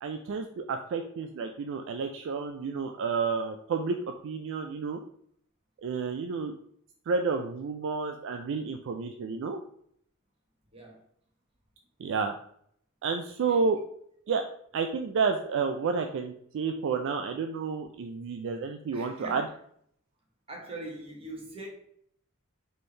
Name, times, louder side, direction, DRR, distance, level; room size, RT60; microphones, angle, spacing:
voice 1, 0.0-4.0 4.2-5.0 5.8-6.5 7.1-9.6 12.0-12.3 13.0-13.8 14.3-14.4 14.7-19.4, right 5 dB, 60° right, 5 dB, 0.3 m, -30 dB
voice 2, 10.7-11.0 13.5-13.6 18.9-19.5 20.5-21.7, right 1 dB, 25° right, -1 dB, 1.1 m, -42 dB
4.3 x 3.3 x 3.2 m, 0.66 s
head